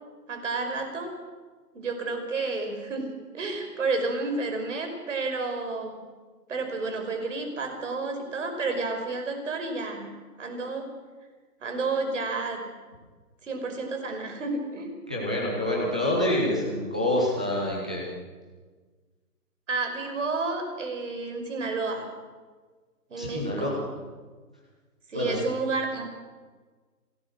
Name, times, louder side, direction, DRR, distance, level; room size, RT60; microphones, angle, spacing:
voice 1, 0.3-1.1 1.7-6.0 6.5-10.9 11.6-12.7 13.4-14.9 19.7-22.1 23.1-23.7 25.1-26.0, right 3 dB, 50° right, 5 dB, 5.4 m, -31 dB
voice 2, 15.1-18.0 23.2-23.8 25.1-25.4, left 1 dB, 5° right, -4 dB, 0.8 m, -27 dB
27.0 x 17.5 x 6.4 m, 1.4 s
hypercardioid pair, 170°, 48 cm